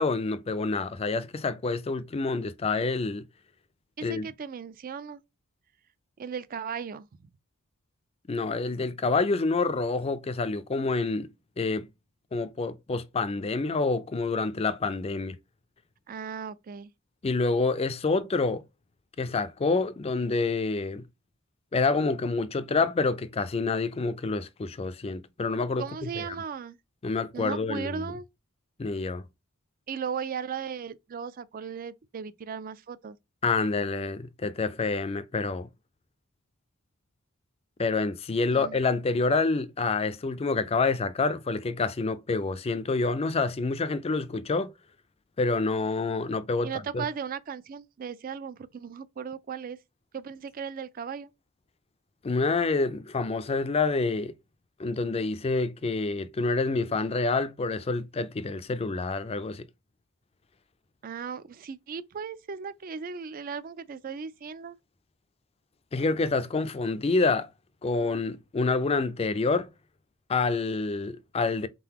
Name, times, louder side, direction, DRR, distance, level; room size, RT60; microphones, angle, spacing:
voice 1, 0.0-3.2 4.0-4.3 8.3-11.3 11.6-11.9 12.3-15.4 17.2-18.6 19.2-21.0 21.7-26.4 27.0-28.0 28.8-29.2 33.4-35.7 37.8-44.7 45.4-47.0 52.2-54.3 54.8-59.7 65.9-67.5 67.8-69.7 70.3-71.7, left 3 dB, 25° left, 0.4 m, -27 dB
voice 2, 4.0-5.2 6.2-7.3 16.1-16.9 25.8-26.8 27.3-28.3 29.9-33.2 38.5-38.8 46.6-49.8 50.1-51.3 61.0-64.8, right 6 dB, 40° right, 0.4 m, -37 dB
3.8 x 3.8 x 2.8 m
head